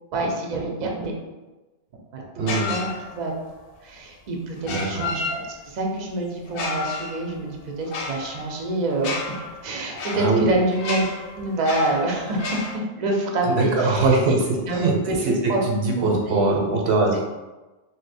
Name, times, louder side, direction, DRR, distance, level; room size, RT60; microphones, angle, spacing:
voice 1, 0.1-1.1 2.1-3.3 3.8-9.2 9.6-11.1 11.4-14.1 14.6-15.6 16.0-16.7, right 2 dB, 50° right, 0 dB, 0.6 m, -27 dB
voice 2, 2.4-2.7 4.6-5.0 10.1-10.5 13.5-17.2, right 3 dB, 80° right, 0 dB, 0.9 m, -22 dB
sound 1, 2.5-3.4 4.6-5.8 6.5-12.8, left 3 dB, 65° left, 0.7 m, -32 dB
2.8 x 2.1 x 4.0 m, 1.1 s
omnidirectional pair, 1.1 m